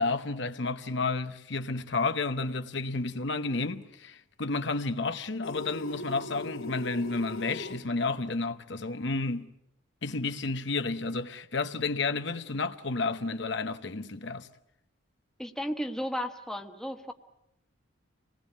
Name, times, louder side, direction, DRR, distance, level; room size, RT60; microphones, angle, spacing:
voice 1, 0.0-9.5 10.0-14.5, left 3 dB, 55° left, 0.9 m, -31 dB
sound 1, 5.4-7.8, left 2 dB, 75° left, 2.5 m, -40 dB
voice 2, 15.4-17.1, equal, ahead, 1.1 m, -34 dB
26.5 x 19.0 x 8.5 m
head